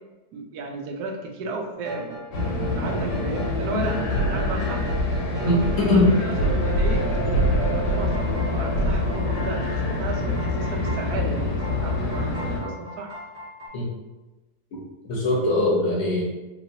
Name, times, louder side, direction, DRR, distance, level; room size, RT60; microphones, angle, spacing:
voice 1, 0.3-2.5 2.8-4.9 5.2-7.0 7.7-13.2 15.6-16.0, right 4 dB, 80° right, 1 dB, 1.1 m, -34 dB
sound 1, 1.7-13.7, right 2 dB, 25° right, 0.9 m, -38 dB
sound 2, 2.3-12.6, left 1 dB, 80° left, 1.2 m, -25 dB
voice 2, 5.4-6.1 13.7-13.9 14.7-16.2, left 2 dB, 60° left, -3 dB, 0.8 m, -22 dB
3.0 x 3.0 x 2.7 m, 1.1 s
omnidirectional pair, 1.6 m